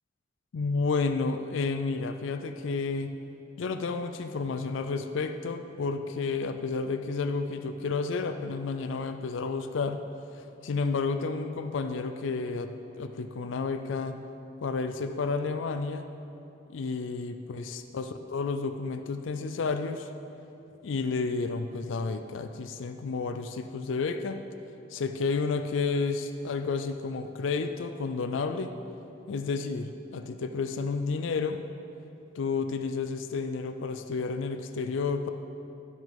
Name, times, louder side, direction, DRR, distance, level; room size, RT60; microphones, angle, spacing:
voice 1, 0.5-3.1 3.6-10.0 10.6-12.7 13.0-14.2 14.6-16.1 16.7-20.1 20.8-24.4 24.9-28.7 29.3-31.6 32.4-35.3, left 4 dB, 75° left, 8 dB, 0.4 m, -31 dB
12.0 x 6.1 x 5.3 m, 2.8 s
head